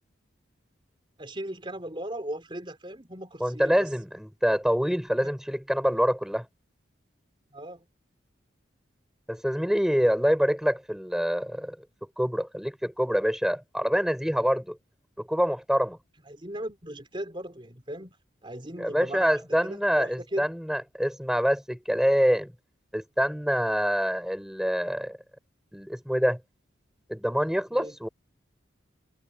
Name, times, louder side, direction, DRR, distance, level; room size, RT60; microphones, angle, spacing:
voice 1, 1.2-3.9 5.2-5.4 7.5-7.9 16.3-18.2 18.4-20.5 27.7-27.9, right 1 dB, 25° right, 4.1 m, -37 dB
voice 2, 3.4-6.4 9.3-11.8 12.2-14.8 15.3-16.0 18.8-22.5 22.9-25.2 25.7-26.4 27.1-28.1, equal, 5° right, 4.2 m, -26 dB
head